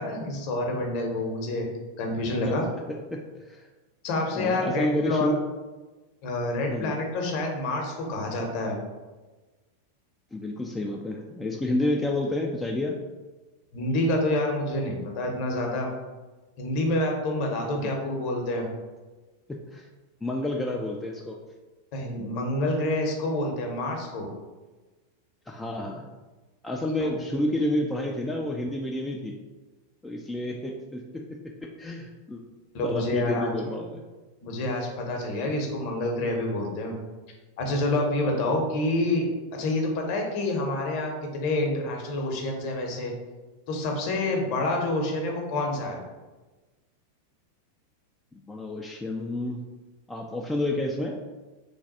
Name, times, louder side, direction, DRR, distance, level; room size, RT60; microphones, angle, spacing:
voice 1, 0.0-2.6 4.0-5.3 6.2-8.8 13.7-15.9 16.6-18.7 21.9-24.3 27.0-27.1 32.7-33.5 34.4-37.0 37.6-39.3 39.5-43.1 43.7-46.0, left 1 dB, 45° left, 1 dB, 0.8 m, -28 dB
voice 2, 2.9-3.7 4.3-5.4 6.7-6.9 10.3-13.0 17.8-17.9 19.5-19.9 20.2-21.4 25.5-26.1 26.6-29.4 30.0-32.4 32.8-34.0 48.3-49.7 50.1-51.2, left 1 dB, 10° left, 0 dB, 0.3 m, -30 dB
3.3 x 2.3 x 4.0 m, 1.2 s
figure-of-eight pair, 90°, 0 cm